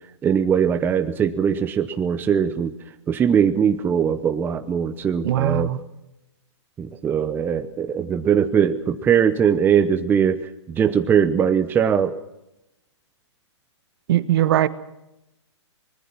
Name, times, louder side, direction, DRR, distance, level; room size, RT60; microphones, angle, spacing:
voice 1, 0.2-2.7 3.1-5.7 6.8-12.1, right 7 dB, 15° right, 9 dB, 0.8 m, -21 dB
voice 2, 5.2-5.8 14.1-14.7, right 12 dB, 50° right, 14 dB, 1.3 m, -20 dB
24.0 x 20.5 x 6.0 m, 0.89 s
hypercardioid pair, 135°, 15 cm